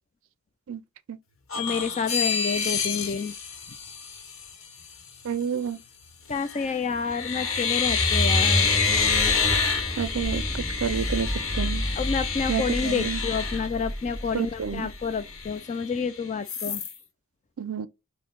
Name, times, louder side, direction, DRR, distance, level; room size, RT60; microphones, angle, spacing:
sound 1, 1.5-4.5 6.3-6.7 7.1-14.3 14.8-14.9 15.1-16.0 16.5-16.9, left 6 dB, 65° left, 1.0 m, -28 dB
voice 1, 1.5-3.4 6.3-8.7 12.0-16.8, left 5 dB, 30° left, 0.3 m, -29 dB
voice 2, 5.2-5.8 10.0-11.8 12.5-13.2 14.3-14.9 17.6-17.9, right 7 dB, 65° right, 0.4 m, -29 dB
sound 2, 7.1-15.4, equal, 5° left, 0.7 m, -30 dB
4.4 x 2.1 x 3.7 m
head